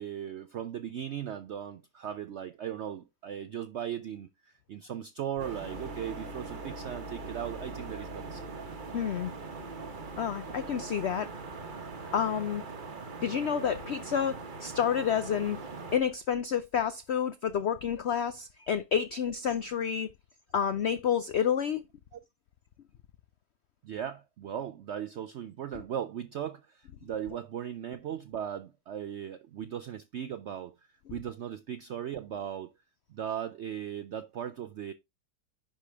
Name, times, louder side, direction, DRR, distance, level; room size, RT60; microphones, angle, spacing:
voice 1, 0.0-8.5 22.1-22.2 23.8-30.8 31.1-32.7 33.1-34.9, right 9 dB, 80° right, 0.6 m, -38 dB
sound 1, 5.4-12.9, left 1 dB, 45° left, 1.3 m, -48 dB
sound 2, 5.4-16.0, right 4 dB, 35° right, 0.9 m, -42 dB
voice 2, 8.9-9.3 10.2-11.3 12.1-12.6 13.2-15.6 15.9-20.1 20.5-21.8, left 8 dB, 75° left, 0.6 m, -29 dB
10.0 x 5.1 x 3.4 m
omnidirectional pair, 1.8 m